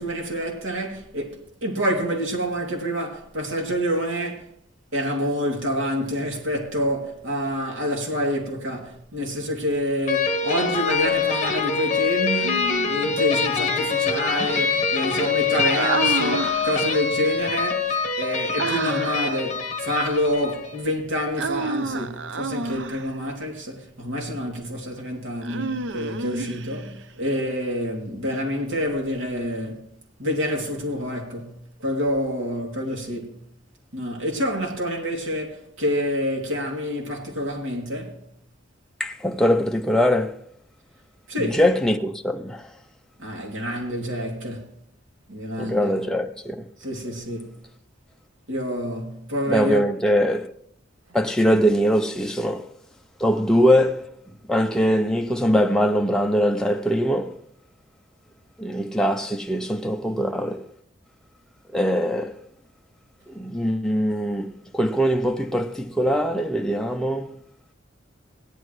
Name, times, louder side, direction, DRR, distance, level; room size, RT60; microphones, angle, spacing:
voice 1, 0.0-4.5 4.9-29.9 30.2-33.4 33.9-38.2 41.3-41.6 43.2-44.7 45.3-45.9 46.8-47.5 48.5-49.9, equal, 90° right, 2.8 m, -27 dB
sound 1, 10.1-20.8, left 5 dB, 35° left, 1.1 m, -24 dB
Human voice, 12.4-13.3 15.7-17.1 18.6-19.4 21.4-23.2 25.4-27.0, right 3 dB, 65° right, 0.6 m, -30 dB
voice 2, 39.0-40.4 41.5-42.7 45.6-46.7 49.5-50.5 51.1-52.7 53.2-54.1 54.5-57.4 58.6-60.6 61.7-62.4 63.3-67.3, equal, 5° left, 0.5 m, -22 dB
17.0 x 11.5 x 3.1 m
head